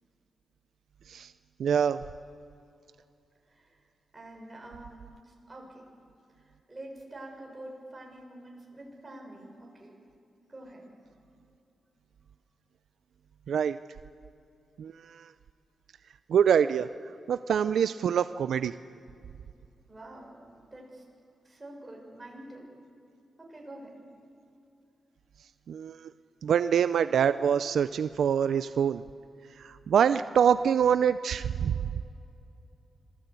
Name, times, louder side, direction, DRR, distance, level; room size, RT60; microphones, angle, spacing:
voice 1, 1.6-2.0 13.5-13.8 14.8-15.3 16.3-16.9 17.3-18.7 25.7-26.1 26.4-29.0 29.5-32.0, right 8 dB, 75° right, 12 dB, 0.5 m, -25 dB
voice 2, 3.5-3.8 4.1-5.8 6.4-9.9 10.5-10.9 19.9-21.1 21.4-22.7 23.4-24.0, right 1 dB, 20° right, -1 dB, 6.5 m, -47 dB
26.0 x 18.5 x 8.3 m, 2.6 s
wide cardioid pair, 120°, 0 cm